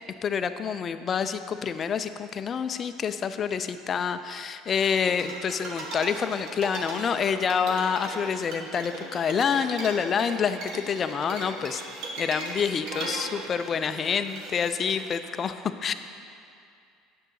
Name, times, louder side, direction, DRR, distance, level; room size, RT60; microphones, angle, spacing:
voice 1, 0.2-11.8 12.2-15.6 15.8-15.9, left 6 dB, 30° left, 10 dB, 0.3 m, -27 dB
sound 1, 4.8-15.3, right 2 dB, 55° right, 1.3 m, -38 dB
9.0 x 7.8 x 3.9 m, 2.4 s
cardioid pair, 150°, 0 cm